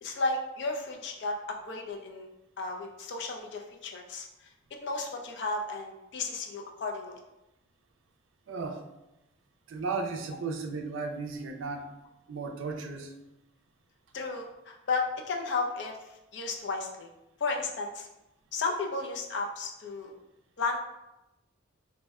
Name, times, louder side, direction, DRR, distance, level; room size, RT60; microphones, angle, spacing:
voice 1, 0.0-2.3 2.6-4.3 4.8-7.2 14.1-16.0 16.3-17.1 17.4-18.1 18.5-20.1 20.6-20.8, left 3 dB, 55° left, 2 dB, 0.4 m, -33 dB
voice 2, 8.5-8.8 9.7-11.9 12.3-13.1, right 4 dB, 70° right, 4 dB, 0.4 m, -35 dB
2.6 x 2.0 x 3.5 m, 0.94 s
head